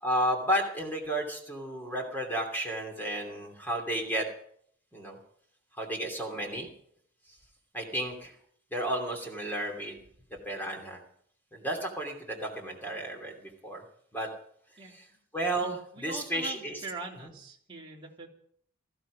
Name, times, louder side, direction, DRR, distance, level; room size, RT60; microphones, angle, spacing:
voice 1, 0.0-4.3 4.9-5.2 5.8-6.7 7.7-8.3 8.7-10.0 10.4-11.0 11.5-13.8 14.1-14.3 14.9-15.0 15.3-16.8, right 1 dB, 10° left, 2 dB, 2.8 m, -32 dB
voice 2, 15.6-18.3, right 3 dB, 25° right, -2 dB, 3.3 m, -43 dB
19.0 x 14.0 x 5.0 m, 0.65 s
head